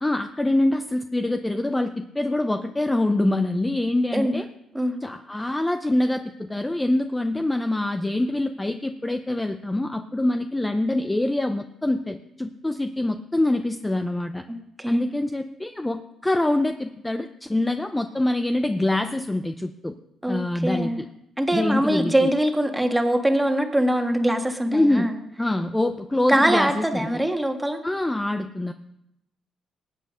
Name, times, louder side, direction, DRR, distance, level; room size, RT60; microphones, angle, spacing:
voice 1, 0.0-4.5 5.0-14.4 14.9-19.9 20.3-20.9 21.5-22.3 24.7-25.1 25.4-27.1 27.8-28.7, left 1 dB, 10° left, 7 dB, 0.6 m, -25 dB
voice 2, 14.5-15.1 20.2-21.0 21.4-25.2 26.3-27.8, right 1 dB, 10° right, 4 dB, 1.8 m, -23 dB
19.0 x 8.2 x 5.1 m, 0.84 s
cardioid pair, 90°, 0 cm